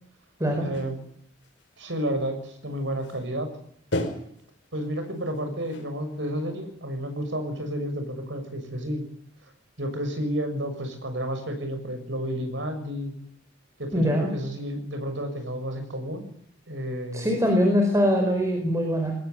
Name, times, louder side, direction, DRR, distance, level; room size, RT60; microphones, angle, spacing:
voice 1, 0.6-1.0 1.8-3.5 4.7-9.0 9.8-13.1 13.8-16.3 16.7-17.3, equal, 75° right, 7 dB, 6.7 m, -31 dB
sound 1, 0.7-1.1 1.4-1.9 2.4-2.5 2.7-3.2 3.9-6.4, left 1 dB, 70° left, 5.2 m, -34 dB
voice 2, 13.9-14.3 17.1-19.1, equal, 15° right, 3 dB, 4.9 m, -22 dB
23.0 x 18.5 x 9.1 m, 0.69 s
head